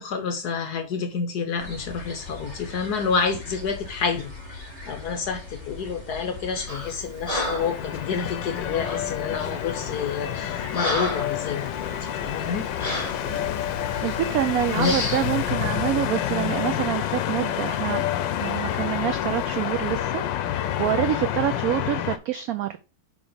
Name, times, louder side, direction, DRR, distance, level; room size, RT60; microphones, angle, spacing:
voice 1, 0.0-12.7 14.6-15.1, left 5 dB, 65° left, 1.4 m, -29 dB
sound 1, 1.6-15.9, left 2 dB, 40° left, 2.5 m, -40 dB
Breathing, 6.7-6.9 7.2-7.8 8.8-9.1 9.7-9.9 10.3-11.4 11.8-12.0 12.8-13.2 13.9-14.1 14.8-15.3, left 1 dB, 20° left, 2.1 m, -30 dB
sound 2, 7.6-22.2, left 11 dB, 80° left, 1.4 m, -28 dB
voice 2, 13.9-18.0 18.4-22.8, right 12 dB, 75° right, 0.8 m, -27 dB
5.1 x 5.0 x 5.0 m
omnidirectional pair, 2.0 m